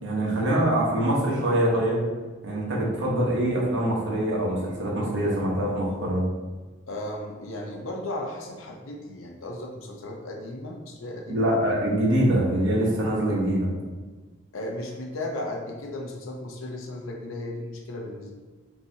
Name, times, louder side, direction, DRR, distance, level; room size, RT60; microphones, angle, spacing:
voice 1, 0.0-2.0 2.4-6.2 11.3-13.7, right 1 dB, 60° right, -3 dB, 1.1 m, -24 dB
voice 2, 6.9-11.7 14.5-18.3, left 1 dB, 75° left, 1 dB, 0.7 m, -35 dB
5.5 x 2.9 x 2.7 m, 1.3 s
head